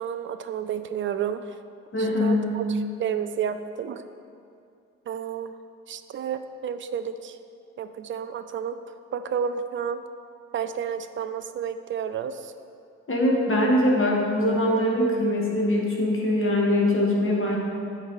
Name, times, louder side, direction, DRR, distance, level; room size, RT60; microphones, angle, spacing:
voice 1, 0.0-1.6 2.0-2.6 3.0-4.0 5.1-5.6 5.9-7.4 7.8-8.8 9.1-10.0 10.5-12.5, right 8 dB, 30° right, 9 dB, 0.4 m, -31 dB
voice 2, 1.9-2.4 13.1-17.6, left 1 dB, 30° left, -2 dB, 1.8 m, -22 dB
13.0 x 4.6 x 3.3 m, 2.5 s
figure-of-eight pair, 45°, 42 cm